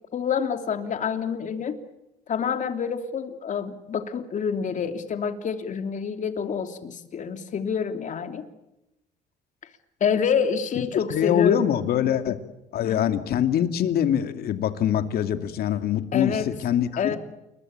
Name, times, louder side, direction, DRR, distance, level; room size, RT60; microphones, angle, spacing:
voice 1, 0.1-1.8 2.3-8.4 10.0-11.6 11.9-12.1 12.8-13.0 16.1-16.5 17.0-17.2, left 7 dB, 45° left, 7 dB, 3.1 m, -27 dB
voice 2, 11.1-12.4 12.7-17.2, left 10 dB, 65° left, 9 dB, 2.5 m, -24 dB
29.0 x 22.0 x 8.9 m, 0.90 s
cardioid pair, 110°, 17 cm